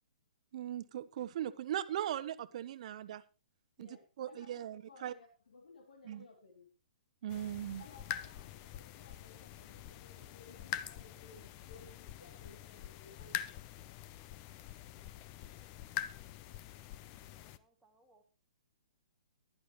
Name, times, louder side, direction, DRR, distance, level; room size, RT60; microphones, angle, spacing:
voice 1, 0.5-3.2 3.8-3.9 4.2-5.1 6.0-6.2 7.2-7.8, right 11 dB, 50° right, 13 dB, 1.0 m, -39 dB
voice 2, 3.8-6.7 7.8-13.4, left 4 dB, 80° left, 4 dB, 2.7 m, -58 dB
sound 1, 7.3-17.6, left 12 dB, 30° left, 0.7 m, -45 dB
voice 3, 17.2-18.2, right 2 dB, ahead, -1 dB, 1.3 m, -70 dB
15.5 x 11.0 x 3.1 m, 0.29 s
hypercardioid pair, 145°, 4 cm